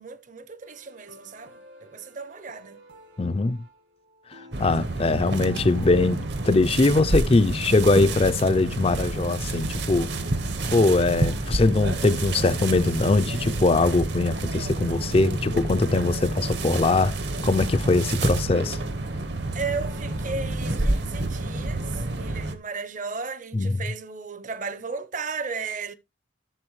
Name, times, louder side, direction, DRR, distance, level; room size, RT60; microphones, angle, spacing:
voice 1, 0.0-2.8 19.5-25.9, right 4 dB, 40° right, 0.7 m, -35 dB
sound 1, 0.6-20.4, right 1 dB, 75° right, 2.6 m, -52 dB
voice 2, 3.2-3.6 4.6-10.1 10.7-17.2 17.4-18.8 23.5-23.8, left 3 dB, 30° left, 0.4 m, -21 dB
sound 2, 4.5-22.6, right 2 dB, 60° right, 0.9 m, -29 dB
12.0 x 7.0 x 3.1 m
head